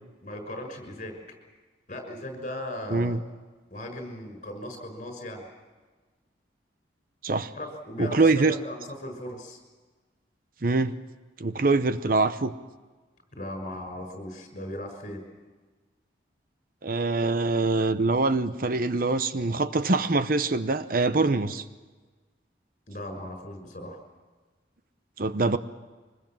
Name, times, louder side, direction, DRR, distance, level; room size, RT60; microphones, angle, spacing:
voice 1, 0.2-1.1 1.9-3.2 3.7-5.4 7.5-9.6 13.3-15.2 22.9-24.0, left 1 dB, 45° left, 5 dB, 6.2 m, -37 dB
voice 2, 8.0-8.6 10.6-10.9 11.4-12.5 16.8-21.6 25.2-25.6, right 3 dB, 50° right, 12 dB, 0.8 m, -24 dB
24.5 x 21.0 x 7.6 m, 1.3 s
head